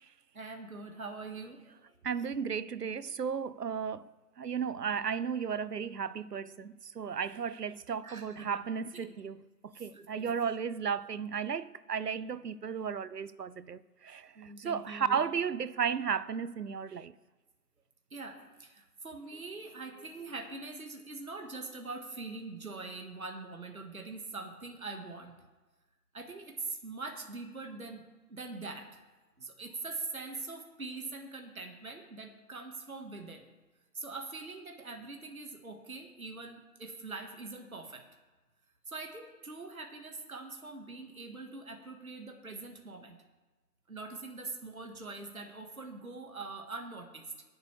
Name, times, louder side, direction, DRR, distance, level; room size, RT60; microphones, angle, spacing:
voice 1, 0.3-1.9 8.0-8.6 8.9-9.0 9.7-10.4 14.3-15.2 18.1-25.3 26.1-29.0 29.4-33.5 33.9-38.0 38.9-43.2 43.9-47.3, right 3 dB, 60° right, 1.7 m, -43 dB
voice 2, 2.0-4.1 4.4-17.1, right 7 dB, 80° right, 0.7 m, -34 dB
19.0 x 8.1 x 3.3 m
figure-of-eight pair, 175°, 47 cm